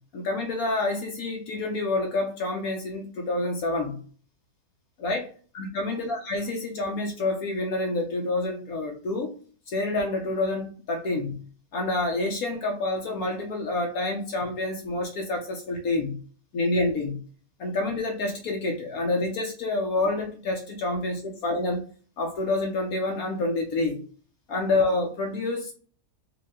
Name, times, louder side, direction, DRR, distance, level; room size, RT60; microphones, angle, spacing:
voice 1, 0.1-4.0 5.0-9.3 9.7-11.4 11.7-16.2 16.5-17.2 17.6-21.8 22.2-24.0 24.5-25.7, left 2 dB, 70° left, 2 dB, 1.3 m, -28 dB
4.9 x 2.7 x 3.6 m, 0.41 s
omnidirectional pair, 1.6 m